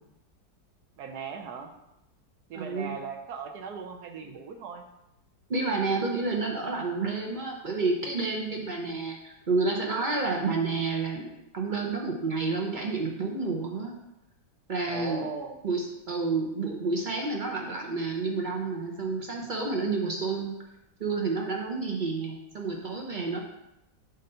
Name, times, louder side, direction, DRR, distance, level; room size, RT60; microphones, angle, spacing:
voice 1, 1.0-1.7 2.5-4.8 14.8-15.6, right 6 dB, 70° right, 5 dB, 1.1 m, -38 dB
voice 2, 2.5-2.9 5.5-13.9 14.7-15.2 15.6-20.5 21.0-23.4, right 3 dB, 55° right, 0 dB, 0.5 m, -30 dB
7.7 x 2.6 x 5.5 m, 0.88 s
omnidirectional pair, 1.9 m